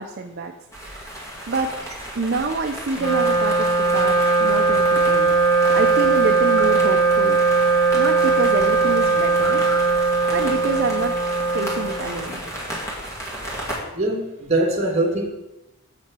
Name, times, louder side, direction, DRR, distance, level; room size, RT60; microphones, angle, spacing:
voice 1, 0.0-1.8 2.1-5.3 5.7-7.5 7.9-9.7 10.3-11.1 11.5-12.4, right 3 dB, 50° right, 4 dB, 0.5 m, -27 dB
sound 1, 0.7-13.8, right 1 dB, 15° left, 2.2 m, -33 dB
Wind instrument woodwind instrument, 2.9-12.5, right 4 dB, 80° left, 3.4 m, -19 dB
voice 2, 13.9-15.3, right 2 dB, 30° right, 1 dB, 1.5 m, -22 dB
7.6 x 5.9 x 6.0 m, 0.95 s
head